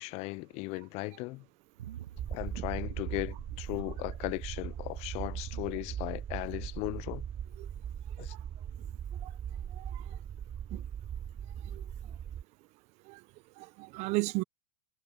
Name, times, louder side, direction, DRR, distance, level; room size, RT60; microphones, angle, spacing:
voice 1, 0.0-1.4 2.3-7.2 8.2-8.3, left 25 dB, 45° left, 0.4 m, -37 dB
sound 1, 1.8-4.8 5.2-7.0 7.4-7.6, right 12 dB, 90° right, 5.8 m, -47 dB
sound 2, 2.1-12.4, right 9 dB, 25° right, 1.4 m, -39 dB
voice 2, 13.6-14.4, right 24 dB, 45° right, 0.6 m, -34 dB
supercardioid pair, 125°, 15 cm